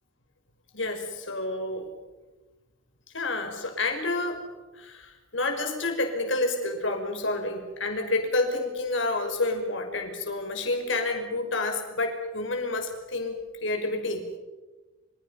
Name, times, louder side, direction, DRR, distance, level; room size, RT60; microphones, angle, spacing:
voice 1, 0.7-1.9 3.1-4.4 4.8-14.2, left 2 dB, 70° left, 5 dB, 5.4 m, -29 dB
28.0 x 27.5 x 5.8 m, 1.2 s
head